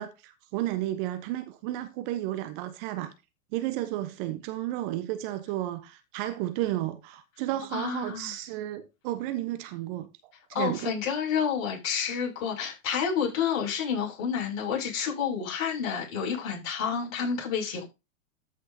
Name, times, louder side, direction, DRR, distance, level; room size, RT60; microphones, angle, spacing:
voice 1, 0.0-3.1 3.5-10.1 10.6-10.9, right 14 dB, 40° right, 1.1 m, -32 dB
voice 2, 7.7-8.3 10.5-17.9, left 7 dB, 40° left, 6.9 m, -29 dB
13.5 x 6.5 x 2.9 m
hypercardioid pair, 110°, 41 cm